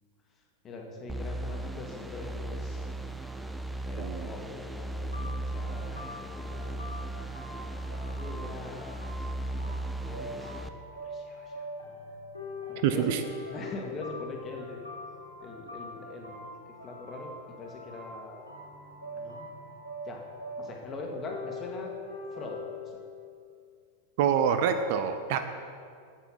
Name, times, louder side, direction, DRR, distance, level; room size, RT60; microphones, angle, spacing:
voice 1, 0.6-2.9 3.8-6.1 6.3-6.6 8.0-9.0 9.3-9.8 10.0-10.6 11.0-11.6 12.7-13.1 13.5-14.9 15.4-16.4 16.8-18.5 19.1-19.6 20.0-20.2 20.6-21.9 22.3-22.6 22.8-23.0 25.3-25.4, left 2 dB, 25° left, 0 dB, 1.7 m, -42 dB
sound 1, 1.1-10.7, right 1 dB, 5° right, 0.5 m, -36 dB
voice 2, 3.9-4.3 12.8-13.2 24.2-25.4, right 8 dB, 50° right, 9 dB, 0.6 m, -26 dB
sound 2, 5.1-22.9, left 2 dB, 85° left, 2.5 m, -43 dB
8.2 x 8.2 x 5.8 m, 2.2 s
figure-of-eight pair, 90°, 0 cm